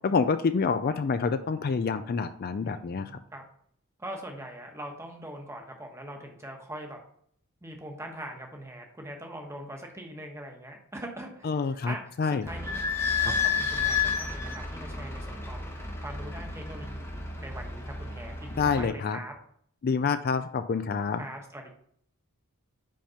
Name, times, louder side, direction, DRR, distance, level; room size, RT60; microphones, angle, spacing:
voice 1, 0.0-3.1 11.4-12.5 18.6-19.2 19.8-21.2, left 5 dB, 40° left, 10 dB, 0.3 m, -27 dB
voice 2, 2.6-3.4 4.0-7.0 7.6-11.6 11.8-12.0 12.3-12.8 13.2-15.7 16.0-19.3 21.2-21.7, right 1 dB, 10° right, 2 dB, 1.1 m, -42 dB
Idling / Squeak, 12.4-18.9, left 5 dB, 10° left, 0.9 m, -31 dB
5.3 x 5.1 x 5.6 m, 0.63 s
head